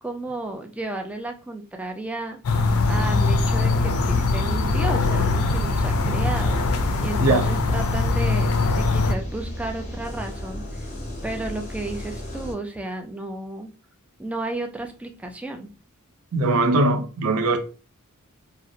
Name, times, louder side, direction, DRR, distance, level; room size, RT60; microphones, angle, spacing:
voice 1, 0.0-2.4 2.8-6.6 7.0-10.9 11.2-13.7 14.2-15.7, right 2 dB, 5° right, 0.3 m, -33 dB
sound 1, 2.4-9.1, left 3 dB, 75° left, 0.4 m, -22 dB
sound 2, 2.5-12.5, equal, 30° left, 0.7 m, -34 dB
voice 2, 16.3-17.6, right 2 dB, 75° right, 0.5 m, -20 dB
2.7 x 2.0 x 2.5 m
head